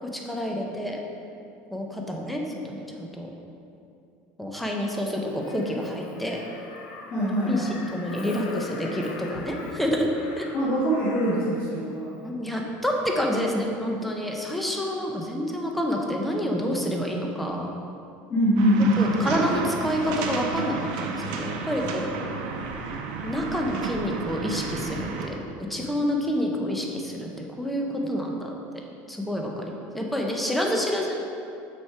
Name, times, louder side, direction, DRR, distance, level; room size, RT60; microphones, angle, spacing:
voice 1, 0.0-1.0 1.7-3.3 4.4-6.4 7.5-10.1 10.4-10.5 12.2-17.7 19.0-22.1 23.2-25.3 25.6-27.3 27.6-28.5 29.1-31.2, equal, ahead, 0 dB, 0.7 m, -28 dB
Crow, 5.2-11.6 13.0-13.2, left 3 dB, 80° left, 0.8 m, -42 dB
voice 2, 7.1-7.7 10.5-12.1 18.3-19.4, equal, 35° left, -10 dB, 1.5 m, -23 dB
sound 1, 18.6-25.3, right 4 dB, 80° right, 0.7 m, -32 dB
6.2 x 4.4 x 4.7 m, 2.6 s
cardioid pair, 145°, 5 cm